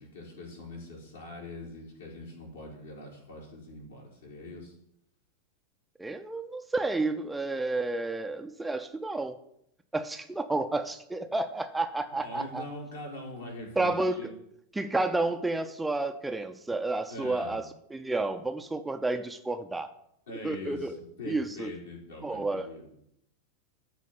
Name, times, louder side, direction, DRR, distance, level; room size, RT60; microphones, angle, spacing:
voice 1, 0.0-4.8 12.1-14.3 17.1-17.6 20.3-22.9, left 2 dB, 65° left, -2 dB, 4.3 m, -43 dB
voice 2, 6.0-9.4 9.9-12.6 13.8-14.3 14.7-19.9 20.4-20.9 21.3-21.7 22.2-22.7, right 2 dB, 5° right, 7 dB, 0.6 m, -31 dB
13.5 x 4.5 x 8.5 m, 0.76 s
figure-of-eight pair, 90°, 0 cm